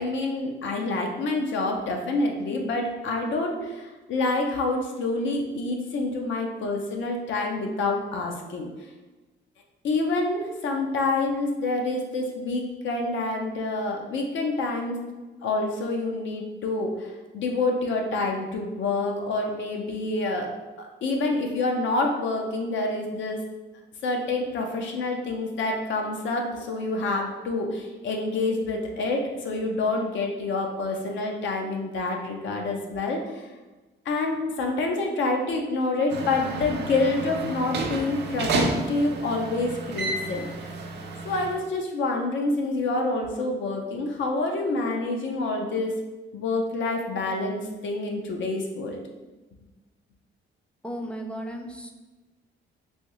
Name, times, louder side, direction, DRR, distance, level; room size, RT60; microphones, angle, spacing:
voice 1, 0.0-8.7 9.8-15.0 15.4-20.5 20.8-23.4 24.0-33.5 34.1-40.7 41.2-45.9 46.3-49.0, left 2 dB, 70° left, 2 dB, 0.7 m, -27 dB
sound 1, 36.1-41.6, right 2 dB, 60° right, 0.5 m, -31 dB
voice 2, 50.8-51.9, equal, 5° left, 3 dB, 0.4 m, -35 dB
3.4 x 2.6 x 3.0 m, 1.2 s
cardioid pair, 90°, 20 cm